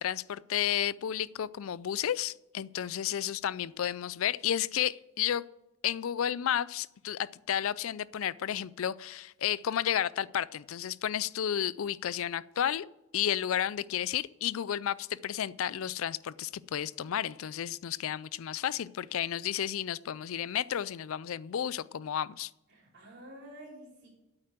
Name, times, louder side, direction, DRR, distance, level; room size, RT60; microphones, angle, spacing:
voice 1, 0.0-5.4 5.8-12.9 13.1-22.5, left 10 dB, 70° left, 20 dB, 0.4 m, -32 dB
voice 2, 22.7-24.1, right 1 dB, 50° right, -2 dB, 4.2 m, -50 dB
8.8 x 8.7 x 7.6 m, 0.94 s
head